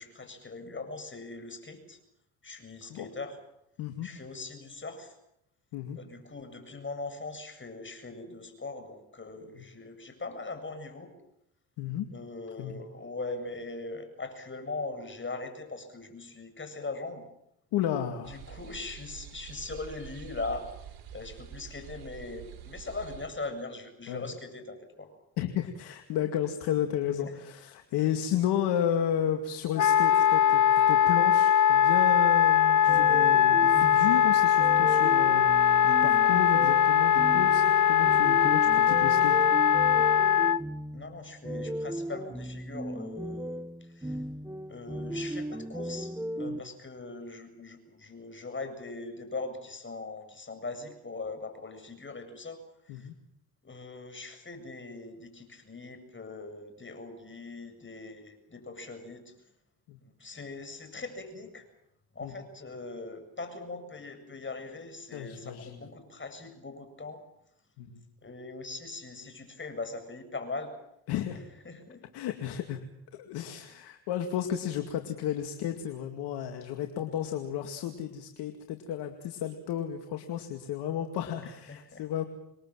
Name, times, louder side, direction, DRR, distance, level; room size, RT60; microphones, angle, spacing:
voice 1, 0.0-2.0 2.4-3.4 4.0-5.1 5.9-11.1 12.1-17.2 18.3-20.7 21.1-25.1 27.2-27.3 39.9-40.1 40.9-44.2 44.7-52.6 52.9-53.1 53.6-59.3 60.0-61.6 62.1-67.2 68.2-70.7 71.6-72.0 81.4-82.1, left 3 dB, 30° left, 7 dB, 7.7 m, -41 dB
voice 2, 3.8-4.1 5.7-6.0 9.6-9.7 11.8-12.1 12.6-12.8 17.7-18.3 24.1-24.3 25.4-39.4 46.5-46.6 52.9-53.1 59.9-60.0 62.2-62.3 65.1-65.8 67.8-68.0 71.1-71.4 72.1-72.8 73.1-82.2, left 10 dB, 80° left, 5 dB, 2.3 m, -33 dB
sound 1, 18.2-23.3, right 11 dB, 70° right, 5.8 m, -46 dB
Wind instrument woodwind instrument, 29.8-40.6, left 9 dB, 45° left, 0.9 m, -21 dB
sound 2, 32.9-46.6, right 1 dB, 5° right, 1.2 m, -36 dB
28.5 x 22.0 x 7.6 m, 0.80 s
supercardioid pair, 65°, 39 cm